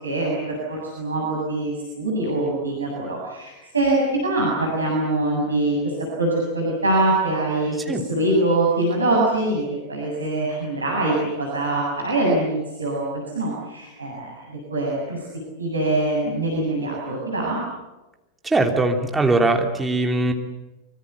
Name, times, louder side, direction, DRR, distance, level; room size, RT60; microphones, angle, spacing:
voice 1, 0.0-9.6 9.9-15.2 15.6-17.6, right 2 dB, 75° right, -3 dB, 7.2 m, -23 dB
voice 2, 18.4-20.3, right 2 dB, 10° right, 3 dB, 3.2 m, -20 dB
24.5 x 24.5 x 8.2 m, 1.0 s
figure-of-eight pair, 90°, 0 cm